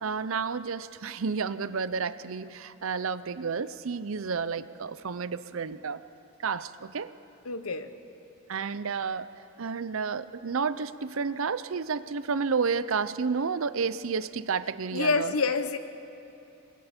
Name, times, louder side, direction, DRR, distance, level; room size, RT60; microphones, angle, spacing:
voice 1, 0.0-6.0 6.4-7.1 8.5-9.3 9.6-15.4, right 5 dB, 65° right, 14 dB, 0.6 m, -31 dB
voice 2, 7.4-7.9 14.9-15.8, left 4 dB, 85° left, 10 dB, 1.1 m, -27 dB
28.0 x 22.5 x 4.4 m, 3.0 s
head